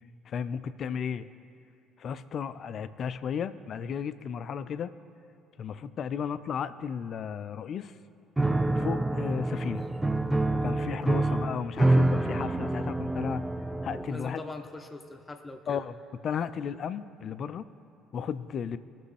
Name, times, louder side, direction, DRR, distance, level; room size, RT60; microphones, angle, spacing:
voice 1, 0.3-1.3 2.0-4.9 5.6-7.9 8.7-9.9 10.6-13.4 13.8-14.4 15.7-15.9 16.2-17.7 18.1-18.8, left 7 dB, 55° left, 13 dB, 0.4 m, -34 dB
Piano, 8.4-14.3, right 2 dB, 10° right, 0.5 m, -27 dB
voice 2, 14.1-15.9, left 2 dB, 25° left, 4 dB, 0.9 m, -42 dB
18.0 x 6.2 x 3.3 m, 2.6 s
hypercardioid pair, 55°, 0 cm